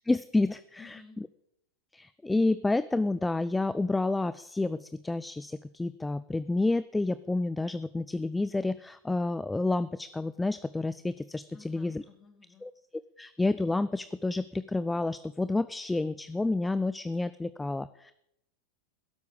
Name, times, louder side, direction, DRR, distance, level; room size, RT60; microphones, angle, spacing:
voice 1, 0.1-1.0 1.9-12.0 12.6-12.7 13.2-18.1, left 2 dB, 10° left, 15 dB, 0.5 m, -29 dB
voice 2, 0.8-1.2 11.5-12.7, left 5 dB, 25° left, 5 dB, 3.6 m, -53 dB
17.0 x 8.1 x 8.8 m, 0.79 s
hypercardioid pair, 95°, 0 cm